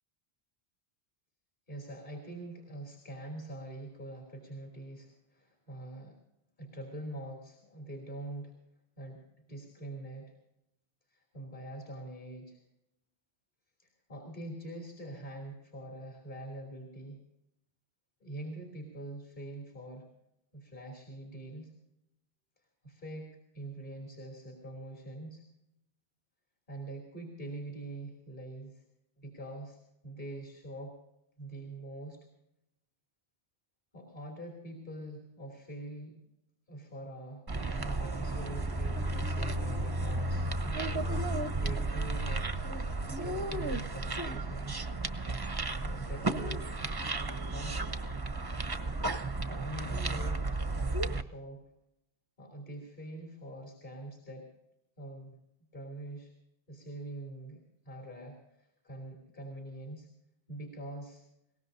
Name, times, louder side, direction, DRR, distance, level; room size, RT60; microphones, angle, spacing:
voice 1, 1.7-6.2 6.6-8.5 9.0-9.2 9.5-10.3 11.1-12.6 13.8-17.2 18.2-20.1 20.5-21.7 22.8-25.4 26.7-28.8 29.2-30.9 31.4-32.2 33.9-36.2 36.7-42.5 43.1-44.8 45.8-46.7 47.4-47.9 49.5-50.7 51.1-51.6 52.4-54.5 55.0-55.4 55.7-56.3 56.7-60.1 60.5-61.2, right 1 dB, 50° left, -1 dB, 3.2 m, -44 dB
sound 1, 37.5-51.2, right 2 dB, 25° right, 0.7 m, -33 dB
22.0 x 18.5 x 2.7 m, 0.85 s
omnidirectional pair, 1.0 m